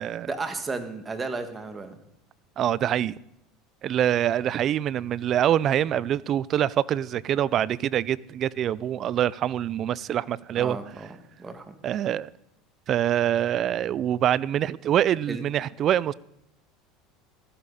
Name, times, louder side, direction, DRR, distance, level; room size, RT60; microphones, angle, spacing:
voice 1, 0.2-2.0 10.6-11.7 15.3-15.4, right 3 dB, 20° right, 2.0 m, -34 dB
voice 2, 2.6-3.1 3.8-10.8 11.8-12.3 12.9-16.1, right 10 dB, 45° right, 0.4 m, -25 dB
15.5 x 13.5 x 4.2 m
supercardioid pair, 110°, 0 cm